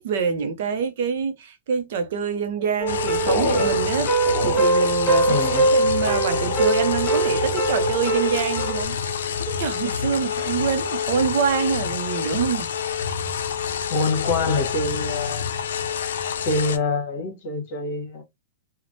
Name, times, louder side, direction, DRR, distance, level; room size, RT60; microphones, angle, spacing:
voice 1, 0.0-4.1 4.4-12.7, right 6 dB, 50° right, 0.5 m, -26 dB
sound 1, 2.8-8.8, right 2 dB, 5° left, 1.1 m, -22 dB
sound 2, 2.9-16.8, left 7 dB, 75° left, 0.5 m, -28 dB
voice 2, 5.3-5.7 13.9-15.5 16.4-18.2, left 3 dB, 40° left, 1.2 m, -25 dB
3.2 x 2.0 x 2.5 m
supercardioid pair, 170°, 0 cm